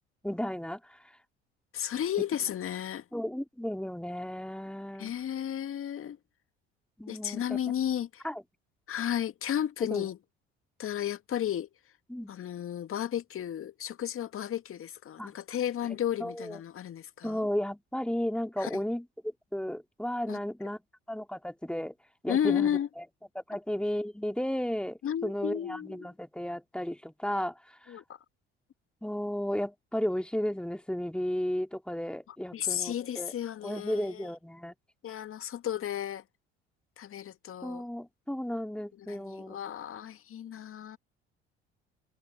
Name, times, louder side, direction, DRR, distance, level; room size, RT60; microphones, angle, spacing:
voice 1, 0.2-1.0 3.1-5.1 7.0-7.6 8.2-8.4 9.9-10.1 12.1-12.3 15.2-15.3 16.2-16.6 17.2-19.1 19.5-20.8 21.1-21.9 22.2-22.8 23.4-27.5 27.8-28.0 29.0-33.3 33.6-34.7 37.6-39.6, equal, 5° left, 3.7 m, -34 dB
voice 2, 1.7-3.0 5.0-6.2 7.1-8.2 8.9-10.2 10.8-11.7 12.3-17.5 18.6-18.8 20.3-20.4 22.3-22.9 25.0-26.1 27.9-28.2 32.5-34.3 35.0-36.2 37.0-37.8 39.0-41.0, left 10 dB, 40° left, 2.1 m, -33 dB
figure-of-eight pair, 55°, 33 cm